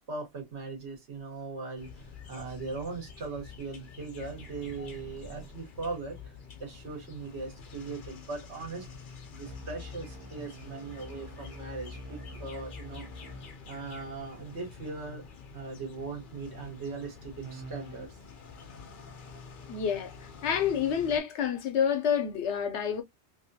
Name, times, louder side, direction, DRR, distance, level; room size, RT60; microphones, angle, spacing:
voice 1, 0.0-8.9 9.3-13.1 13.7-15.2 15.5-18.2, right 4 dB, 75° right, 1.5 m, -39 dB
sound 1, 1.8-21.2, left 5 dB, 50° left, 0.8 m, -48 dB
sound 2, 4.2-5.6 9.4-13.6 17.4-18.1, equal, 30° right, 0.7 m, -46 dB
voice 2, 19.7-23.0, left 8 dB, 85° left, 0.9 m, -28 dB
2.9 x 2.8 x 2.6 m
omnidirectional pair, 1.2 m